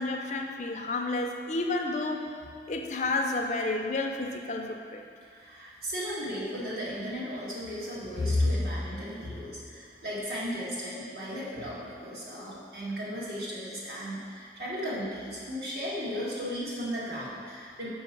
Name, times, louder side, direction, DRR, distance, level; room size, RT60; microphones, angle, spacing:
voice 1, 0.0-2.4 2.7-5.0, left 2 dB, 40° left, 3 dB, 0.5 m, -31 dB
voice 2, 5.2-17.9, left 1 dB, 60° right, -7 dB, 1.7 m, -34 dB
5.5 x 4.7 x 5.9 m, 2.2 s
head